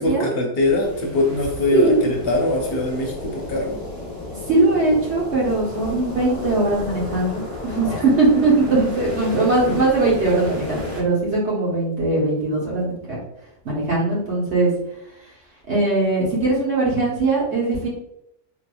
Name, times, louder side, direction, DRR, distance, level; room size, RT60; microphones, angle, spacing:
voice 1, 0.0-3.8 7.8-8.0, left 2 dB, 60° left, 1 dB, 0.8 m, -22 dB
sound 1, 0.6-11.0, left 2 dB, 15° left, 0.9 m, -33 dB
voice 2, 1.7-2.0 4.2-13.2 13.6-14.7 15.7-17.9, right 2 dB, 70° right, -5 dB, 1.5 m, -20 dB
3.5 x 2.8 x 2.3 m, 0.79 s
omnidirectional pair, 1.2 m